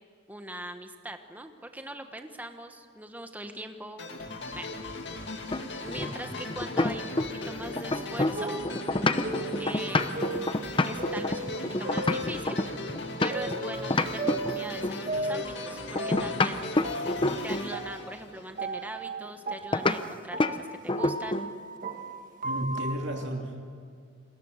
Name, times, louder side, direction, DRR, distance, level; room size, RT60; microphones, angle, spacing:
voice 1, 0.3-4.1 4.5-4.7 5.1-5.2 5.8-8.5 9.6-10.2 10.8-12.6 13.2-16.7 17.4-21.4, right 1 dB, 10° right, 6 dB, 1.3 m, -41 dB
sound 1, 4.0-18.8, left 2 dB, 60° left, 2.4 m, -38 dB
sound 2, 5.5-7.5 7.8-13.6 13.9-15.1 16.0-17.7 19.7-20.0 20.4-20.6 20.9-21.5, left 2 dB, 25° left, 0.8 m, -28 dB
sound 3, 8.0-12.8 13.3-16.6 16.8-22.9, right 2 dB, 40° right, 1.7 m, -36 dB
voice 2, 22.4-23.6, right 1 dB, 60° right, 1 dB, 2.6 m, -33 dB
29.5 x 21.0 x 6.6 m, 2.3 s
head